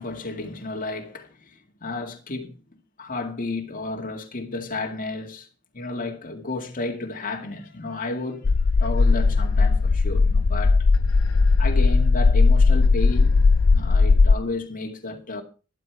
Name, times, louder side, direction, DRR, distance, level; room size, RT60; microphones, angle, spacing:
voice 1, 0.0-2.6 3.0-5.5 5.7-8.5 8.8-10.9 11.6-13.4 13.7-15.4, left 3 dB, 40° left, 2.1 m, -32 dB
sound 1, 8.5-14.4, left 4 dB, 80° left, 0.6 m, -18 dB
12.0 x 11.5 x 4.7 m
head